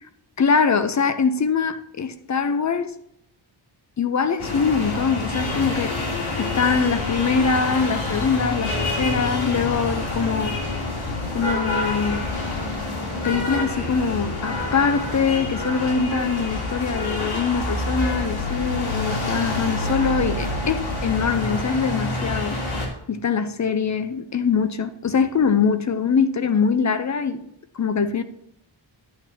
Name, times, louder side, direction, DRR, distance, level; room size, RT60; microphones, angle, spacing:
voice 1, 0.4-3.0 4.0-6.0 6.4-10.6 11.3-12.3 13.2-22.6 23.1-27.4 27.7-28.2, left 5 dB, 35° left, 0.7 m, -23 dB
sound 1, 4.4-22.9, left 2 dB, 90° left, 3.4 m, -27 dB
12.5 x 8.8 x 2.8 m
wide cardioid pair, 150°, 48 cm